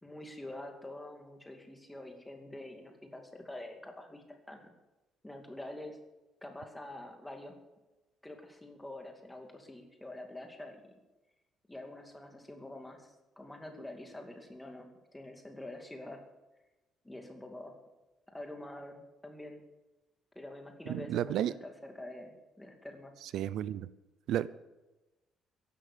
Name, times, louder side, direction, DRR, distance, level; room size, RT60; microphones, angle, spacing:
voice 1, 0.0-4.7 5.2-6.0 6.4-7.6 8.2-11.0 11.7-16.2 17.0-17.8 18.3-19.6 20.3-23.1, left 1 dB, 5° left, 3 dB, 2.4 m, -46 dB
voice 2, 20.9-21.5 23.2-23.9 24.3-24.5, right 11 dB, 70° right, 17 dB, 0.5 m, -32 dB
14.5 x 11.5 x 6.9 m, 1.1 s
cardioid pair, 160°, 0 cm